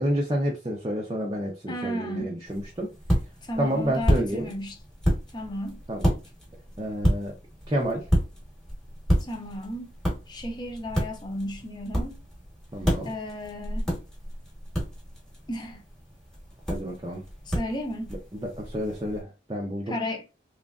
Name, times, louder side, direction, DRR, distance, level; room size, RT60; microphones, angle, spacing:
voice 1, 0.0-2.9 3.6-4.5 5.9-6.1 6.8-7.4 7.7-8.1 12.7-13.1 16.7-17.3 18.1-20.0, right 1 dB, 25° right, 0.6 m, -29 dB
voice 2, 1.7-2.3 3.4-4.7 5.3-5.8 9.2-9.9 10.3-12.2 13.0-13.9 15.5-15.8 17.5-18.1 19.9-20.2, left 1 dB, 25° left, 0.7 m, -33 dB
sound 1, 2.5-19.2, equal, 5° left, 1.2 m, -30 dB
3.5 x 3.0 x 2.4 m
head